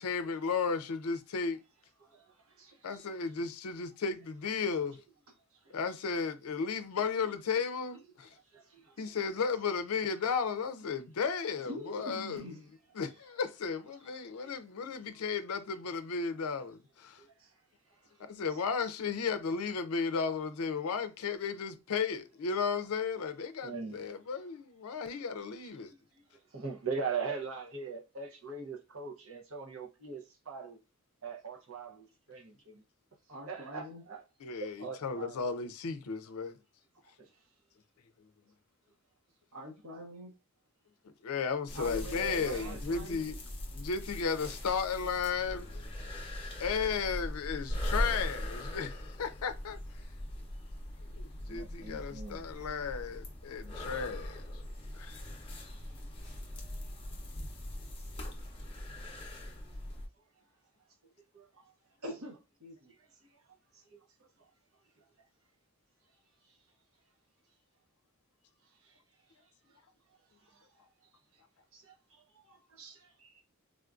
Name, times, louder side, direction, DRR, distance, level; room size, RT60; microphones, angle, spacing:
voice 1, 0.0-1.6 2.8-5.0 5.7-8.3 9.0-12.5 13.0-17.2 18.2-25.9 34.4-36.6 41.2-43.4 43.7-45.8 46.6-49.8 51.2-54.4 54.9-55.2, left 5 dB, 75° left, 0.5 m, -34 dB
voice 2, 2.6-3.0 8.5-9.0 14.4-14.5 17.2-17.3 23.6-24.0 25.2-25.3 26.5-30.8 31.2-32.8 33.5-34.2 34.6-35.4 42.2-43.2 51.5-52.4 61.3-61.4 63.9-64.0 71.7-71.9 72.5-73.4, right 5 dB, 65° right, 0.8 m, -41 dB
voice 3, 11.6-12.6 33.3-34.0 37.0-37.1 39.5-40.3 41.7-43.3 62.0-62.3 62.6-62.9, left 1 dB, 80° right, 1.2 m, -44 dB
sound 1, 41.7-60.1, left 1 dB, 25° left, 0.7 m, -40 dB
3.6 x 2.5 x 2.3 m
head